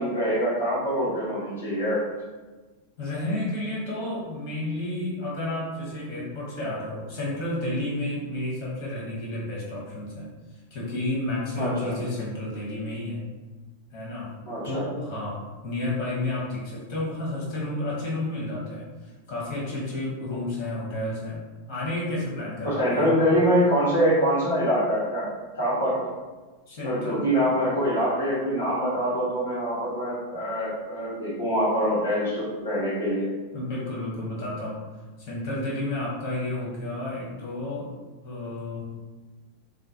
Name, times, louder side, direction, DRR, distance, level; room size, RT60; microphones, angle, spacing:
voice 1, 0.0-2.0 11.6-11.9 14.4-14.8 22.6-25.2 25.6-26.0 26.8-33.3, equal, 70° left, -7 dB, 1.1 m, -24 dB
voice 2, 3.0-10.3 10.7-13.2 13.9-14.3 14.6-23.1 26.7-27.3 33.5-34.8 35.2-37.9 38.2-39.0, left 1 dB, 45° left, -5 dB, 1.0 m, -31 dB
2.4 x 2.0 x 2.8 m, 1.3 s
figure-of-eight pair, 90°, 0 cm